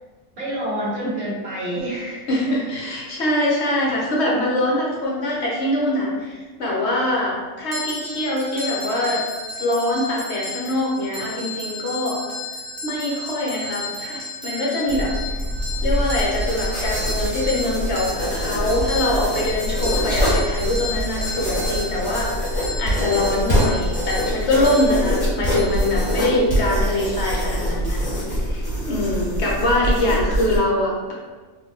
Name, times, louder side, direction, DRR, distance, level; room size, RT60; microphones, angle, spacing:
voice 1, 0.3-2.3 18.6-18.7, right 1 dB, 70° right, -8 dB, 1.8 m, -28 dB
voice 2, 2.3-9.2 9.6-12.2 12.8-15.1 15.8-22.4 22.8-28.0 28.3-31.1, left 1 dB, 60° left, -4 dB, 1.1 m, -23 dB
sound 1, 7.7-26.5, left 2 dB, 35° right, 0.7 m, -33 dB
sound 2, 14.9-30.6, equal, 35° left, 1.7 m, -24 dB
3.8 x 3.1 x 2.8 m, 1.3 s
omnidirectional pair, 1.4 m